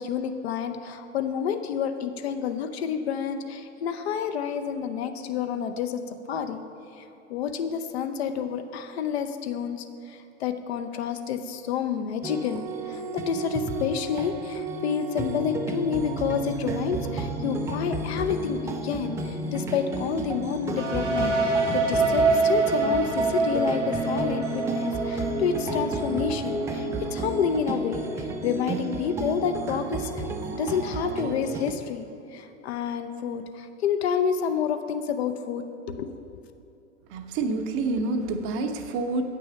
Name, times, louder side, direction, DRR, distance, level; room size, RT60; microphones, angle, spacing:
voice 1, 0.0-6.6 7.0-7.1 7.3-30.2 30.5-36.4, left 7 dB, 60° left, 8 dB, 0.7 m, -29 dB
sound 1, 12.2-31.7, right 3 dB, 10° right, 0.3 m, -32 dB
sound 2, 20.8-28.5, right 3 dB, 90° right, 1.0 m, -27 dB
voice 2, 37.1-39.2, right 3 dB, 35° right, 7 dB, 0.7 m, -28 dB
8.9 x 6.2 x 5.7 m, 2.6 s
figure-of-eight pair, 90°, 36 cm